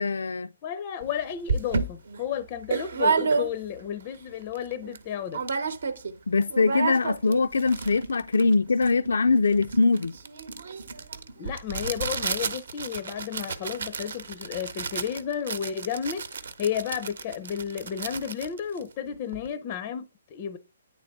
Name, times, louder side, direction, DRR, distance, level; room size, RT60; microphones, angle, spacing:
voice 1, 0.0-0.5 6.3-10.2, left 4 dB, 90° left, 0.3 m, -22 dB
voice 2, 0.6-5.4 11.4-16.2 16.6-20.6, left 8 dB, 25° left, 0.4 m, -32 dB
sound 1, 1.0-1.1 1.5-3.9 4.3-4.4 4.5-5.0 5.3-6.1 6.4-19.5, right 4 dB, 65° right, 0.9 m, -31 dB
9.6 x 3.8 x 3.5 m
hypercardioid pair, 170°, 0 cm